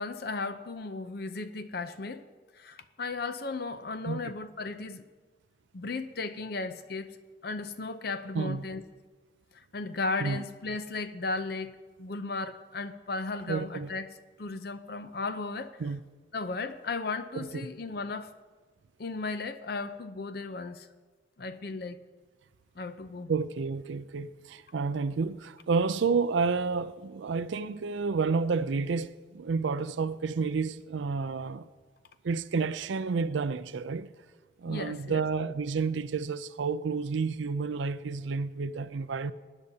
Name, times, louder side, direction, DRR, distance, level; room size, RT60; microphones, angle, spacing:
voice 1, 0.0-2.3 2.5-5.0 5.7-7.2 7.4-8.8 9.5-15.8 16.3-18.3 19.0-20.9 21.4-22.0 22.8-23.3 34.7-35.2, left 3 dB, 55° left, 0.6 m, -35 dB
voice 2, 13.5-13.9 15.8-16.0 17.4-17.7 23.3-31.7 32.2-34.1 34.6-39.3, right 4 dB, 75° right, 0.4 m, -30 dB
20.0 x 9.8 x 2.8 m
head